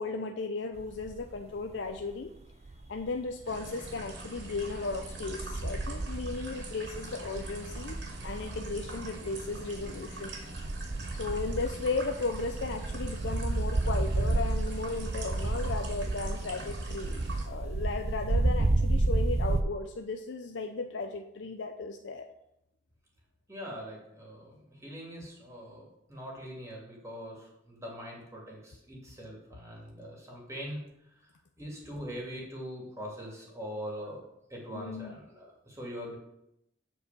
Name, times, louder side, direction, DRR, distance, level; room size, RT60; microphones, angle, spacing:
voice 1, 0.0-2.3 2.9-8.0 8.2-10.3 11.1-22.3 34.7-35.2, left 3 dB, 90° left, 5 dB, 0.6 m, -35 dB
sound 1, 0.8-1.4 1.8-3.1 3.6-19.6, right 2 dB, 35° right, 0.5 m, -32 dB
sound 2, 3.4-17.5, right 2 dB, 75° right, 2.3 m, -44 dB
voice 2, 23.5-30.8 31.6-34.2 34.5-36.2, equal, 15° right, -3 dB, 2.5 m, -42 dB
8.1 x 4.7 x 7.0 m, 0.82 s
head